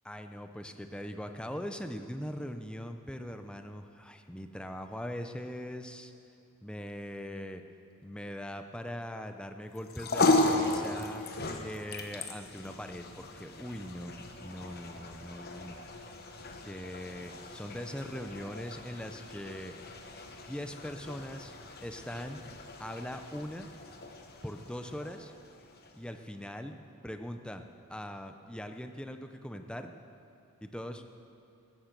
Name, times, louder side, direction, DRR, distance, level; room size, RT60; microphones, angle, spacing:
voice 1, 0.1-6.1 6.6-7.6 8.0-11.2 11.6-14.1 14.4-15.8 16.0-16.1 16.6-19.7 20.3-21.5 21.8-22.4 22.8-23.7 24.4-25.3 25.9-26.8 27.0-27.6 27.9-29.9 30.6-31.3, equal, 5° left, 6 dB, 0.6 m, -41 dB
sound 1, 9.7-26.2, left 2 dB, 45° left, 1.1 m, -35 dB
15.0 x 12.0 x 6.7 m, 2.8 s
head